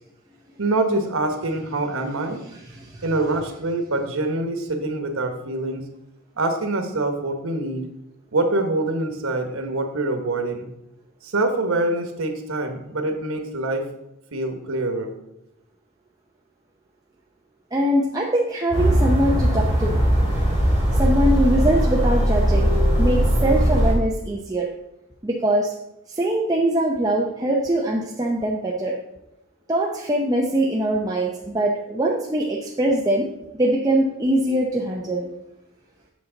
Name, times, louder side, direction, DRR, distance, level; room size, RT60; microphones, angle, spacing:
voice 1, 0.6-2.4 3.0-5.8 6.4-7.9 8.3-10.7 11.2-13.9 14.3-15.1, right 2 dB, 90° right, 6 dB, 1.3 m, -25 dB
voice 2, 2.7-3.0 17.7-20.0 20.9-22.7 23.0-24.7 25.2-25.7 26.1-29.0 29.7-33.3 33.6-35.3, right 1 dB, 15° right, -2 dB, 0.6 m, -22 dB
sound 1, 18.7-23.9, equal, 30° left, 3.4 m, -19 dB
8.5 x 6.6 x 3.9 m, 0.89 s
head